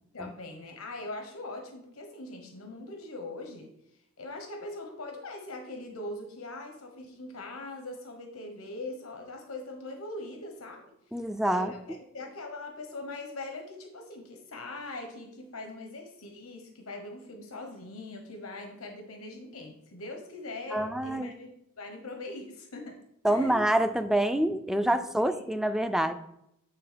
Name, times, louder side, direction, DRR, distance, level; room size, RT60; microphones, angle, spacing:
voice 1, 0.1-3.7 4.2-10.8 11.5-23.0 23.3-23.7 25.2-25.4, left 2 dB, 85° left, 3 dB, 1.2 m, -41 dB
voice 2, 11.1-11.7 20.7-21.3 23.2-26.1, right 1 dB, ahead, 9 dB, 0.4 m, -26 dB
9.0 x 3.7 x 6.8 m, 0.78 s
head